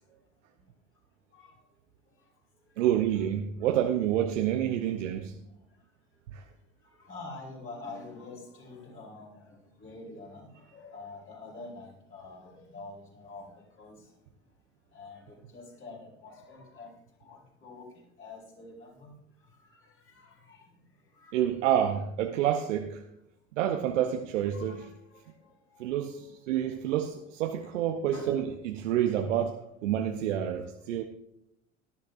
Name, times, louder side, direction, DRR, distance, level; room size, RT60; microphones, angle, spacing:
voice 1, 2.8-5.3 6.3-6.4 21.3-23.0 23.6-24.9 25.8-29.6 29.8-31.0, right 10 dB, 70° right, 0.9 m, -28 dB
voice 2, 7.0-13.5 13.8-14.0 14.9-16.9 17.2-17.9 18.2-19.1 20.2-20.6 21.2-21.4 24.5-24.9 27.6-27.7 28.1-28.4, left 3 dB, 35° left, 4.8 m, -46 dB
17.5 x 12.0 x 2.6 m
figure-of-eight pair, 70°, 39 cm